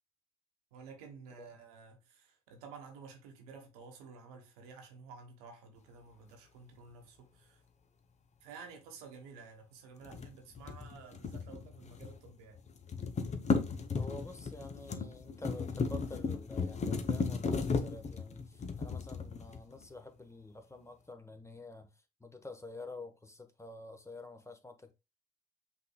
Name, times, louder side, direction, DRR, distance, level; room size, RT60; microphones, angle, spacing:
voice 1, 0.7-7.6 8.4-12.6, right 5 dB, 85° right, 1.0 m, -52 dB
sound 1, 10.0-12.3 12.6-19.9, left 4 dB, 35° left, 0.8 m, -35 dB
voice 2, 13.9-21.9 22.2-24.9, left 2 dB, 15° left, 1.0 m, -49 dB
5.7 x 3.5 x 2.2 m
hypercardioid pair, 50°, 19 cm